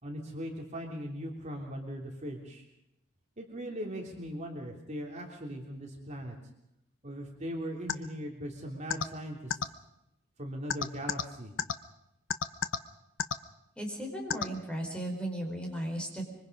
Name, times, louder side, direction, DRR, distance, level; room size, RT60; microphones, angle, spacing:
voice 1, 0.0-2.6 3.4-6.4 7.0-9.6 10.4-11.5, equal, 35° right, 1 dB, 3.2 m, -39 dB
sound 1, 7.9-8.0 8.9-9.0 9.5-9.6 10.7-11.2 11.6-11.7 12.3-12.8 13.2-13.4 14.3-14.4, left 6 dB, 70° left, 0.9 m, -28 dB
voice 2, 13.8-16.3, right 1 dB, 5° left, 1 dB, 4.7 m, -36 dB
25.5 x 24.5 x 5.4 m, 0.83 s
head